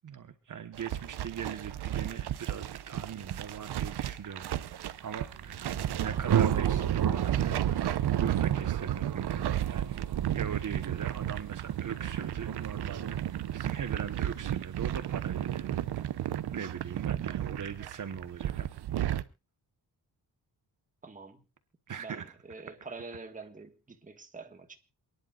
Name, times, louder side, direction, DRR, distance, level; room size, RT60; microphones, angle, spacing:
voice 1, 0.0-4.5 5.0-9.9 10.3-15.8 16.5-18.7 21.9-22.2, right 7 dB, 50° right, 1.3 m, -40 dB
sound 1, 0.7-19.2, right 11 dB, 90° right, 0.9 m, -33 dB
Thunder, 4.9-16.5, right 9 dB, 70° right, 1.9 m, -35 dB
voice 2, 21.0-21.4 22.0-24.8, right 3 dB, 20° right, 1.6 m, -46 dB
28.0 x 10.5 x 2.4 m
wide cardioid pair, 145°, 38 cm